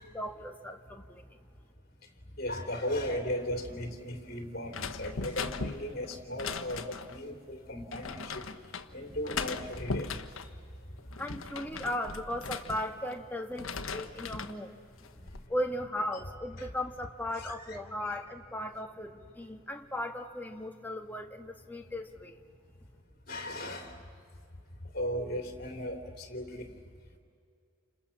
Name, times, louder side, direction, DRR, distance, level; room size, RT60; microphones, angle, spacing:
voice 1, 0.0-1.4 11.2-14.8 15.5-22.4, left 1 dB, 10° left, 4 dB, 1.4 m, -37 dB
voice 2, 2.3-8.5 8.9-10.5 15.2-15.3 16.1-16.2 16.6-16.7 17.3-17.8 18.0-18.2 23.3-23.9 24.9-26.7, left 1 dB, 45° left, 4 dB, 3.5 m, -37 dB
sound 1, 4.7-7.2 7.9-8.9 9.3-10.5 11.0-13.2 13.5-14.6 15.0-15.5, left 4 dB, 85° left, 1.2 m, -38 dB
30.0 x 27.0 x 7.3 m, 2.3 s
head